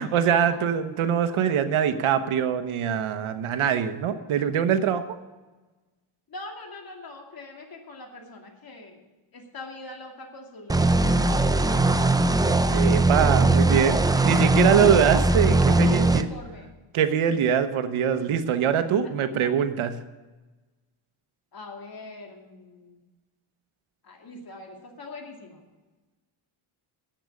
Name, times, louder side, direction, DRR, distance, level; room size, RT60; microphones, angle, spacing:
voice 1, 0.0-5.0 12.7-16.3 16.9-19.9, right 8 dB, 75° right, 10 dB, 1.0 m, -23 dB
voice 2, 6.3-9.0 9.3-12.3 13.4-14.5 15.9-16.7 21.5-23.0 24.0-25.6, left 2 dB, 45° left, 2 dB, 2.5 m, -43 dB
sound 1, 10.7-16.2, right 2 dB, 10° right, 0.4 m, -20 dB
10.0 x 7.8 x 8.3 m, 1.2 s
cardioid pair, 115°, 49 cm